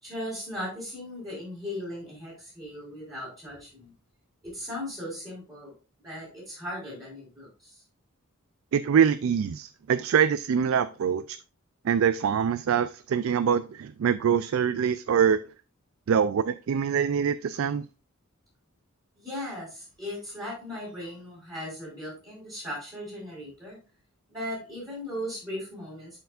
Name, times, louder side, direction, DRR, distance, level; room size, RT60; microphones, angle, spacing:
voice 1, 0.0-3.9 4.4-5.7 6.0-7.8 19.2-23.8 24.3-26.2, left 1 dB, 15° right, -6 dB, 3.9 m, -37 dB
voice 2, 8.7-11.4 11.8-15.4 16.1-17.9, right 7 dB, 70° right, 13 dB, 0.3 m, -24 dB
11.5 x 4.6 x 2.5 m, 0.34 s
head